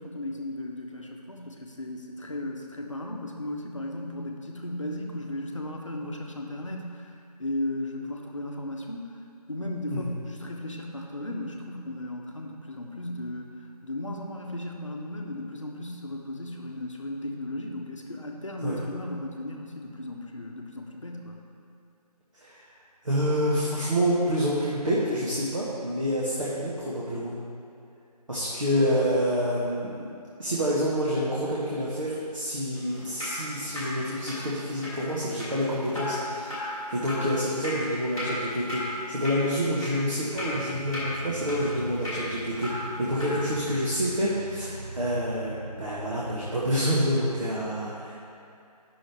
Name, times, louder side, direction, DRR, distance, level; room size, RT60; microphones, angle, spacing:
voice 1, 0.0-7.1 7.4-9.2 9.5-21.4, left 1 dB, 50° left, 1 dB, 0.9 m, -35 dB
voice 2, 23.0-27.3 28.3-30.1 30.4-42.7 43.0-48.1, equal, 50° right, -8 dB, 1.4 m, -28 dB
Drip, 32.8-43.4, left 1 dB, 5° right, 1.5 m, -36 dB
sound 1, 40.3-46.7, right 2 dB, 80° right, 0.9 m, -42 dB
9.4 x 6.2 x 3.4 m, 2.6 s
figure-of-eight pair, 170°, 21 cm